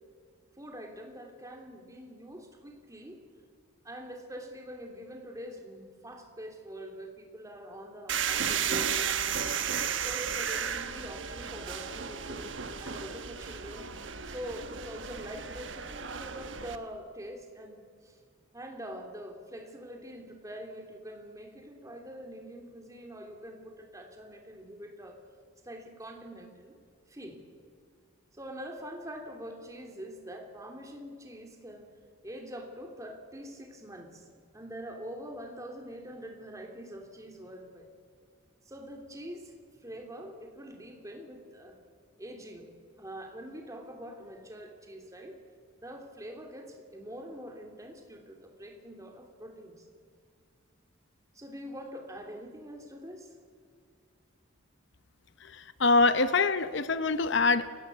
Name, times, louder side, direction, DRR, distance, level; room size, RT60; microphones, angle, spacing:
voice 1, 0.6-3.2 3.8-9.6 10.0-12.5 12.8-13.9 14.3-18.2 18.5-25.2 25.6-26.8 27.1-27.4 28.3-31.9 32.2-34.3 34.5-37.9 38.6-41.8 42.2-45.4 45.8-49.8 51.3-53.3, equal, 15° right, 3 dB, 3.0 m, -44 dB
sound 1, 8.1-16.8, right 7 dB, 65° right, 1.3 m, -34 dB
voice 2, 55.4-57.7, left 3 dB, 60° left, 12 dB, 0.7 m, -25 dB
29.5 x 16.5 x 8.4 m, 2.1 s
head